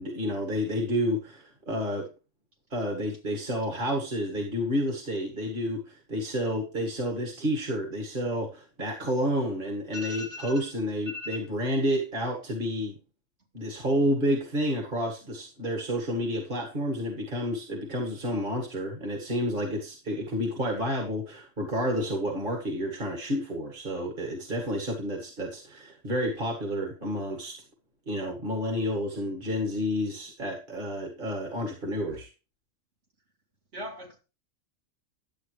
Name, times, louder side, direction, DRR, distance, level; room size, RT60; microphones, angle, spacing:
voice 1, 0.0-2.1 2.7-13.0 13.5-27.6 28.1-32.3, equal, 40° right, 2.1 m, -30 dB
voice 2, 9.9-10.5 11.1-11.4 33.7-34.2, left 2 dB, 60° right, 2.9 m, -38 dB
12.0 x 8.4 x 3.2 m
omnidirectional pair, 1.3 m